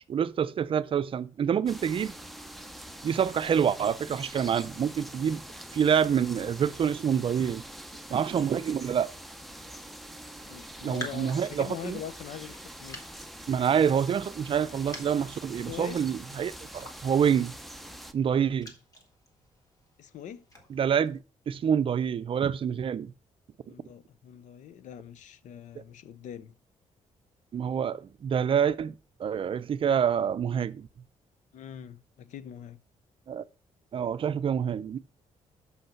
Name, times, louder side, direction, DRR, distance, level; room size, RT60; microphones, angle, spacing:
voice 1, 0.1-2.1 3.0-5.4 5.7-7.6 8.1-9.1 10.8-12.0 13.5-17.5 18.1-18.7 20.7-21.2 21.5-23.1 27.5-30.9 33.3-33.4 33.9-35.0, right 8 dB, 45° right, 0.5 m, -27 dB
sound 1, 1.7-18.1, right 1 dB, ahead, 0.6 m, -45 dB
voice 2, 10.5-13.0 15.7-16.0 20.0-20.4 23.7-26.5 31.5-32.8, left 9 dB, 75° left, 0.6 m, -43 dB
Raindrop, 10.5-21.2, left 1 dB, 25° left, 1.8 m, -50 dB
6.4 x 5.5 x 5.8 m
cardioid pair, 130°, 13 cm